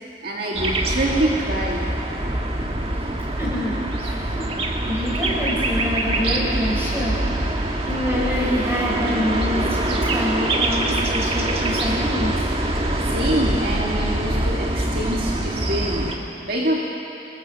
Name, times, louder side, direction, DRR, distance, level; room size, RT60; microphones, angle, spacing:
voice 1, 0.2-1.8 13.1-16.1 16.4-16.8, right 1 dB, 50° right, -3 dB, 2.1 m, -25 dB
sound 1, 0.6-16.2, right 1 dB, 30° right, 1.7 m, -24 dB
voice 2, 3.4-4.5 4.8-7.5 7.8-12.3, left 1 dB, 15° right, -6 dB, 7.0 m, -26 dB
25.5 x 21.5 x 7.0 m, 2.9 s
head